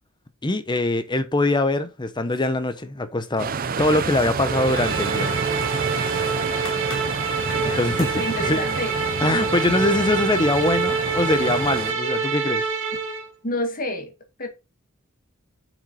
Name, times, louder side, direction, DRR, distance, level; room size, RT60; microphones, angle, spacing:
voice 1, 0.4-3.5 3.8-5.3 7.6-8.6 9.2-12.7, left 2 dB, 20° left, 0.9 m, -23 dB
sound 1, 2.3-3.0 3.4-6.2 6.7-7.2 7.5-7.7 8.0-8.2, left 3 dB, 70° left, 2.0 m, -42 dB
sound 2, 3.4-11.9, right 5 dB, 45° right, 0.6 m, -29 dB
sound 3, 4.4-13.2, right 4 dB, 65° right, 2.3 m, -26 dB
voice 2, 7.5-7.9 8.1-8.9 13.4-14.1 14.4-14.5, left 1 dB, 45° left, 1.9 m, -29 dB
7.3 x 6.3 x 4.0 m
head